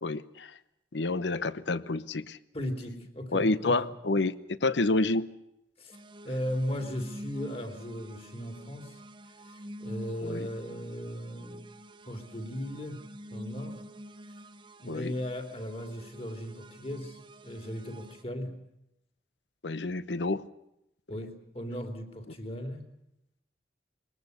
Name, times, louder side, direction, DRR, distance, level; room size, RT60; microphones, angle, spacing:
voice 1, 0.0-0.5 0.9-2.4 3.3-5.3 10.2-10.5 14.9-15.1 19.6-20.4, left 2 dB, 80° left, 17 dB, 0.9 m, -29 dB
voice 2, 2.5-3.9 5.8-6.0 6.2-9.0 9.4-11.7 12.1-13.8 14.8-18.6 21.1-22.9, equal, 35° left, 7 dB, 3.1 m, -37 dB
sound 1, 5.9-18.2, equal, 25° right, 1.0 m, -47 dB
22.5 x 19.0 x 8.1 m, 0.83 s
head